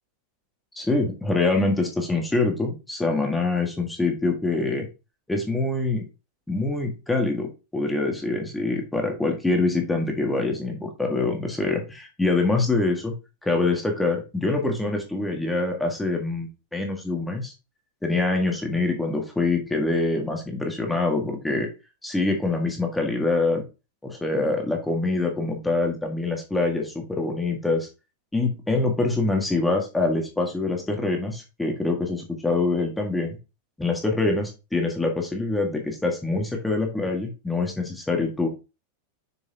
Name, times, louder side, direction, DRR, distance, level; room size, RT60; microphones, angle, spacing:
voice 1, 0.7-4.9 5.3-6.1 6.5-13.1 13.4-17.5 18.0-21.7 22.0-23.6 24.0-27.9 28.3-33.4 33.8-38.5, left 3 dB, 5° left, 2 dB, 1.8 m, -25 dB
6.5 x 6.5 x 2.8 m, 0.29 s
figure-of-eight pair, 90°, 0 cm